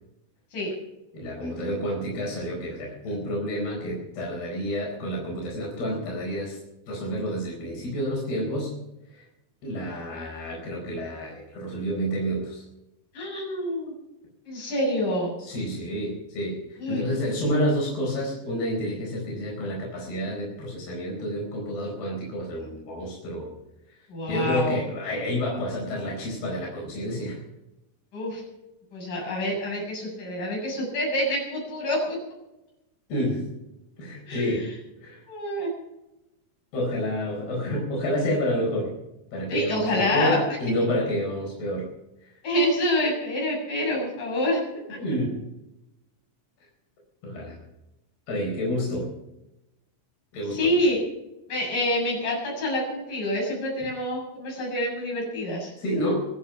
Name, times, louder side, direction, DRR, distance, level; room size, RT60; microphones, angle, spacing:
voice 1, 1.1-6.6 6.9-8.7 9.1-9.3 9.6-12.6 15.4-23.5 24.3-27.4 33.1-33.4 34.0-34.7 35.0-35.2 36.7-38.9 39.3-41.9 42.2-42.4 45.0-45.3 47.2-47.6 48.3-49.1 50.3-50.7 55.8-56.3, equal, 90° left, -3 dB, 6.5 m, -29 dB
voice 2, 13.1-13.9 14.5-15.3 16.8-17.0 24.1-24.8 28.1-28.4 28.9-32.2 34.3-34.7 35.3-35.7 39.5-40.4 42.4-44.6 44.9-45.0 50.5-51.0 51.5-55.7, left 1 dB, 55° left, -2 dB, 9.0 m, -27 dB
24.0 x 9.3 x 5.8 m, 0.92 s
omnidirectional pair, 4.4 m